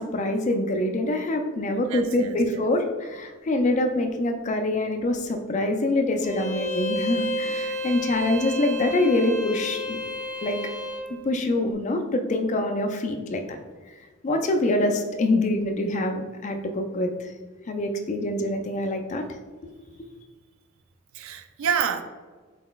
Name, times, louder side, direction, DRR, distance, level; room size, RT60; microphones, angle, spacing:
voice 1, 0.0-10.0 10.4-10.6 11.2-13.6 14.2-17.3 17.7-19.3, left 1 dB, 35° left, 5 dB, 0.3 m, -25 dB
voice 2, 1.9-2.6 21.1-22.0, right 7 dB, 65° right, 9 dB, 0.3 m, -28 dB
Bowed string instrument, 6.2-11.1, left 1 dB, 15° right, 0.9 m, -31 dB
4.1 x 3.9 x 2.3 m, 1.4 s
head